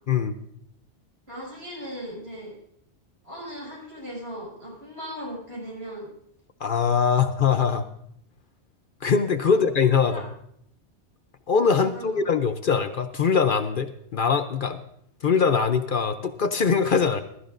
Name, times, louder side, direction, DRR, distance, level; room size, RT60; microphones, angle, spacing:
voice 1, 1.3-2.6 3.2-6.1 9.5-9.6 10.0-10.3 11.8-12.3, equal, 65° right, -5 dB, 7.1 m, -38 dB
voice 2, 6.6-7.9 9.0-10.3 11.5-14.8 15.2-17.2, left 6 dB, 55° left, 9 dB, 0.8 m, -22 dB
20.5 x 13.0 x 2.5 m, 0.71 s
omnidirectional pair, 1.1 m